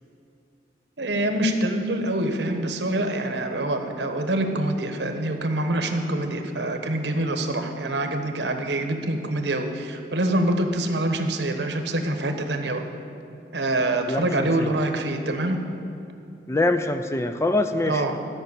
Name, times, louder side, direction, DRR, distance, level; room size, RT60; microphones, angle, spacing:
voice 1, 1.0-12.8 13.5-15.6 17.8-18.2, right 1 dB, 80° right, 6 dB, 1.1 m, -25 dB
voice 2, 14.1-14.7 16.5-18.0, left 2 dB, 15° left, 9 dB, 0.4 m, -24 dB
13.0 x 5.8 x 8.3 m, 2.7 s
head